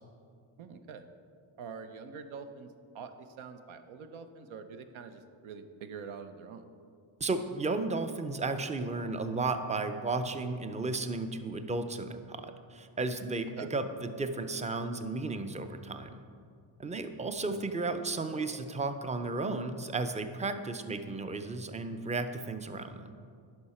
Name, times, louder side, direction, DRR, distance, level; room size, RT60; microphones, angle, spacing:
voice 1, 0.6-1.1 1.6-6.6 13.6-13.7 17.4-17.6, right 5 dB, 85° right, 8 dB, 0.7 m, -45 dB
voice 2, 7.2-16.2 16.8-23.1, right 3 dB, 15° right, 9 dB, 0.4 m, -34 dB
10.5 x 5.6 x 4.2 m, 2.3 s
cardioid pair, 95°, 47 cm